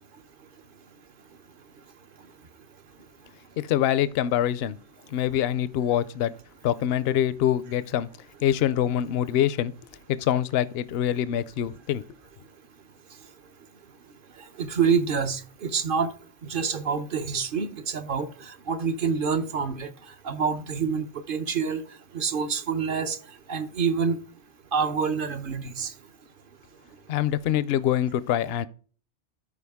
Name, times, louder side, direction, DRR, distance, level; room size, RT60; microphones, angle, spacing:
voice 1, 3.6-4.7 5.1-6.3 6.6-8.1 8.4-9.7 10.2-12.0 27.1-28.7, left 11 dB, 70° left, 0.8 m, -24 dB
voice 2, 14.6-16.1 16.5-18.3 18.7-19.9 20.2-21.8 22.1-23.2 23.5-24.2 24.7-25.9, right 6 dB, 55° right, 0.9 m, -26 dB
12.5 x 4.8 x 3.5 m
omnidirectional pair, 1.1 m